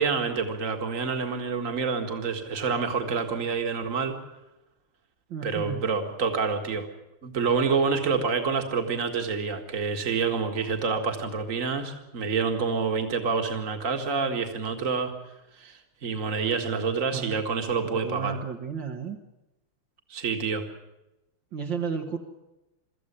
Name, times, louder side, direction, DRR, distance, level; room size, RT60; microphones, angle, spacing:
voice 1, 0.0-4.2 5.4-6.9 7.2-15.1 15.6-18.4 20.1-20.6, right 5 dB, 35° right, 5 dB, 2.1 m, -27 dB
voice 2, 5.3-5.8 17.1-17.4 18.0-19.2 21.5-22.2, right 6 dB, 60° right, 2 dB, 2.1 m, -32 dB
23.0 x 14.5 x 10.0 m, 0.95 s
omnidirectional pair, 2.4 m